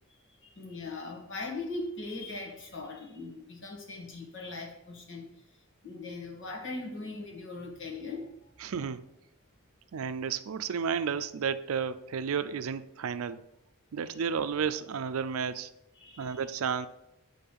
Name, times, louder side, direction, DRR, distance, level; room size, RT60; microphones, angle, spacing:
voice 1, 0.1-8.5 14.1-14.2 16.0-16.5, left 3 dB, 60° left, -1 dB, 1.8 m, -40 dB
voice 2, 8.6-9.0 9.9-13.4 13.9-15.7 16.2-16.9, right 6 dB, 70° right, 12 dB, 0.4 m, -32 dB
8.7 x 3.8 x 5.4 m, 0.88 s
head